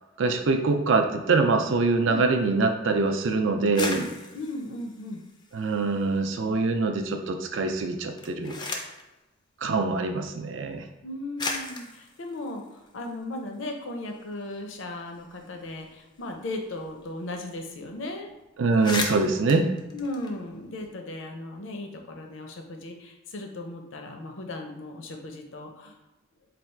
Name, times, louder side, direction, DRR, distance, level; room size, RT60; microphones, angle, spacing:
voice 1, 0.2-4.0 5.5-8.6 9.6-10.8 18.6-19.7, right 3 dB, 65° right, 6 dB, 0.4 m, -24 dB
voice 2, 3.6-4.1 4.3-5.2 11.0-18.3 19.9-26.0, left 2 dB, 70° left, 3 dB, 0.6 m, -36 dB
sound 1, 3.6-6.2 6.5-7.2 8.0-9.1 10.1-10.2 11.0-11.1 11.4-13.7 14.1-14.2 14.4-17.0 17.3-17.4 17.7-17.9 18.3-18.4 18.6-20.9, left 3 dB, 20° left, 0.4 m, -37 dB
3.3 x 2.3 x 4.4 m, 1.0 s
head